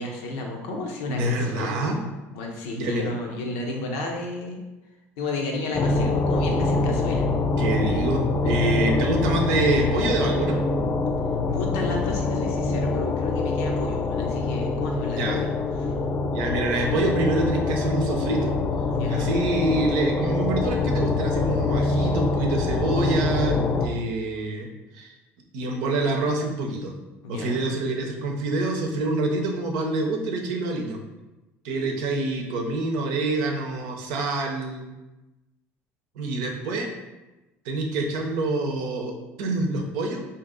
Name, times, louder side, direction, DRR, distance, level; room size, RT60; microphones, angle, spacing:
voice 1, 0.0-1.7 2.3-4.6 5.2-7.3 11.5-15.5 15.8-16.0 18.9-19.3 27.2-27.6, left 2 dB, 75° left, 1 dB, 0.7 m, -32 dB
voice 2, 1.1-2.0 2.7-3.1 7.6-10.6 15.1-15.4 16.3-18.6 19.1-24.7 24.9-25.1 25.5-26.9 27.3-31.0 31.6-34.9 36.2-36.9 37.6-40.2, right 2 dB, 70° right, 2 dB, 0.6 m, -26 dB
sound 1, 5.7-23.9, left 3 dB, 40° left, 0.4 m, -24 dB
2.8 x 2.8 x 3.7 m, 1.1 s
hypercardioid pair, 70°, 7 cm